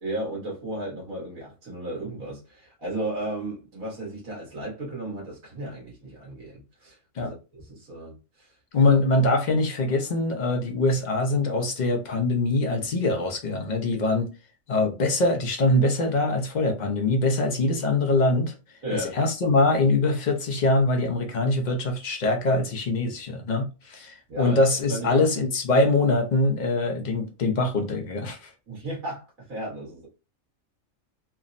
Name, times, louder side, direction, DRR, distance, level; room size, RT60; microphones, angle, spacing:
voice 1, 0.0-8.9 18.8-19.1 24.3-24.6 24.9-25.3 28.7-30.1, right 1 dB, 90° right, 1.6 m, -34 dB
voice 2, 8.7-14.3 14.7-18.5 18.9-28.5, left 2 dB, 55° left, 0.5 m, -23 dB
3.4 x 2.0 x 2.4 m
omnidirectional pair, 1.4 m